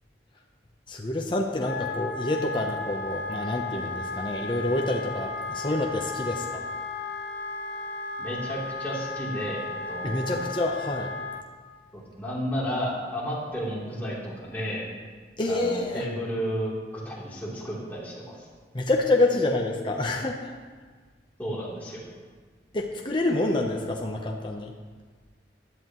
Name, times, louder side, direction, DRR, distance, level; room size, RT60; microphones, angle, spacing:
voice 1, 0.9-6.7 10.0-11.1 15.4-16.0 18.7-20.5 22.7-24.7, left 2 dB, 30° left, 1 dB, 0.9 m, -27 dB
Wind instrument woodwind instrument, 1.5-11.4, left 3 dB, 90° left, 0.9 m, -35 dB
voice 2, 8.2-10.5 11.9-14.9 15.5-18.5 21.4-22.0, equal, 10° left, -8 dB, 3.3 m, -32 dB
15.5 x 11.0 x 3.1 m, 1.5 s
head